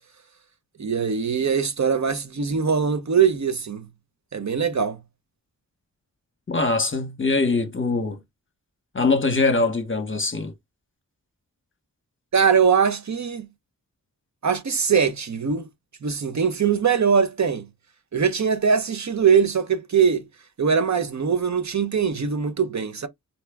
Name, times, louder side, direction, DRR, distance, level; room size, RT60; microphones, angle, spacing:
voice 1, 0.8-3.9 4.3-5.0 12.3-13.5 14.4-15.7 16.0-17.7 18.1-20.2 20.6-23.1, right 6 dB, 50° right, 0.7 m, -21 dB
voice 2, 6.5-8.2 8.9-10.5, left 3 dB, 35° left, 0.8 m, -22 dB
4.1 x 2.2 x 3.4 m
wide cardioid pair, 70°, 35 cm